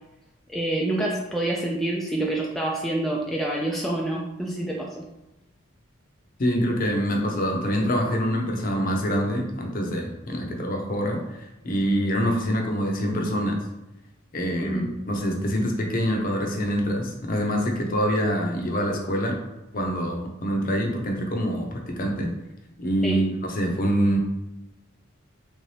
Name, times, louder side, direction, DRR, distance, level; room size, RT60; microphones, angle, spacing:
voice 1, 0.5-5.1 14.6-14.9 23.0-23.2, right 1 dB, ahead, -3 dB, 0.3 m, -27 dB
voice 2, 6.4-11.4 11.6-13.6 14.3-19.3 19.7-22.3 22.8-24.2, equal, 45° left, 1 dB, 0.6 m, -25 dB
3.4 x 2.7 x 3.2 m, 0.97 s
head